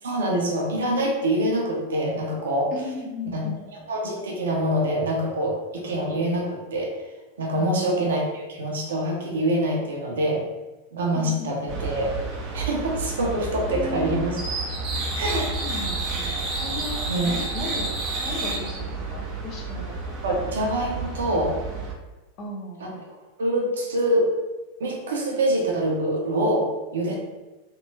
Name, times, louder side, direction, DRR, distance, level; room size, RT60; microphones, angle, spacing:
voice 1, 0.0-2.7 3.3-3.4 3.9-7.1 7.4-10.4 10.9-12.1 12.5-14.4 15.1-15.5 17.1-17.3 20.2-21.6 22.8-22.9 23.4-24.3 24.8-27.2, right 1 dB, 65° right, -2 dB, 1.0 m, -25 dB
voice 2, 2.7-3.6 7.5-8.1 11.1-11.5 13.6-14.4 15.6-17.9 18.2-20.2 22.4-22.9, left 2 dB, 35° left, -1 dB, 0.9 m, -36 dB
sound 1, 11.7-21.9, right 3 dB, 30° right, 0.7 m, -30 dB
3.4 x 3.0 x 3.3 m, 1.1 s
figure-of-eight pair, 90°, 0 cm